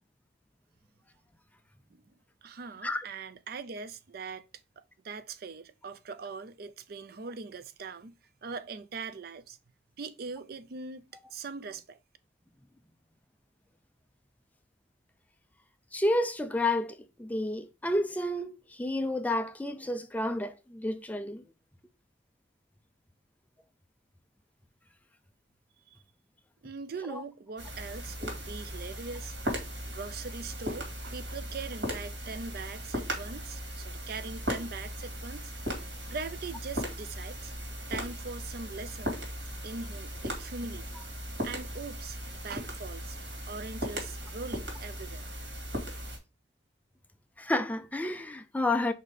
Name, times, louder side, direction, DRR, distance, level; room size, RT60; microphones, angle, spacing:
voice 1, 2.4-4.5 4.8-9.6 10.0-12.0 25.9-26.0 26.6-29.4 29.9-35.5 36.1-37.5 37.9-39.2 39.6-41.0 41.4-45.3, right 4 dB, 55° right, 0.5 m, -41 dB
voice 2, 15.9-21.4 27.1-27.2 47.4-48.9, left 1 dB, 10° left, 0.5 m, -30 dB
sound 1, 27.6-46.2, equal, 80° right, 2.3 m, -38 dB
5.2 x 4.1 x 4.9 m
head